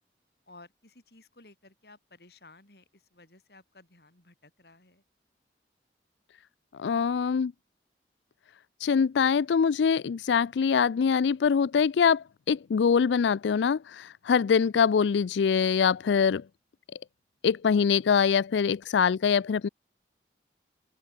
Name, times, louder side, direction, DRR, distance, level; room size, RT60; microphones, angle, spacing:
voice 1, 0.5-5.0, left 2 dB, 65° left, 4.7 m, -55 dB
voice 2, 6.8-7.5 8.8-16.4 17.4-19.7, left 6 dB, 85° left, 0.4 m, -24 dB
open air
head